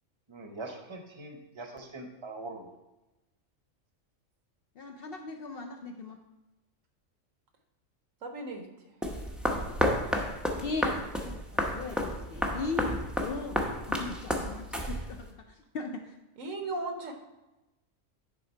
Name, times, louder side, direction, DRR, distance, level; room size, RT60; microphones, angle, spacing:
voice 1, 0.3-2.7, right 2 dB, 25° right, 3 dB, 0.7 m, -42 dB
voice 2, 4.8-6.2 10.6-13.6 13.9-16.2, left 4 dB, 65° left, 4 dB, 0.6 m, -38 dB
voice 3, 8.2-8.7 16.4-17.1, right 2 dB, 80° right, 4 dB, 1.4 m, -36 dB
sound 1, 9.0-15.3, equal, ahead, 0.4 m, -31 dB
9.8 x 3.6 x 4.4 m, 1.0 s
omnidirectional pair, 1.3 m